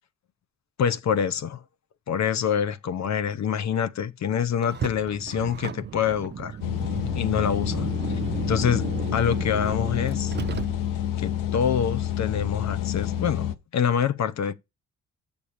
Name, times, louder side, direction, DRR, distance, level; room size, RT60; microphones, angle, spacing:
voice 1, 0.8-1.6 2.1-6.6 7.1-7.9 8.5-10.3 11.2-14.5, left 8 dB, 55° left, 0.8 m, -26 dB
Car, 4.6-11.2, right 8 dB, 35° right, 0.4 m, -34 dB
sound 1, 6.6-13.5, left 12 dB, 90° left, 0.7 m, -28 dB
7.1 x 6.9 x 5.0 m
supercardioid pair, 60°, 32 cm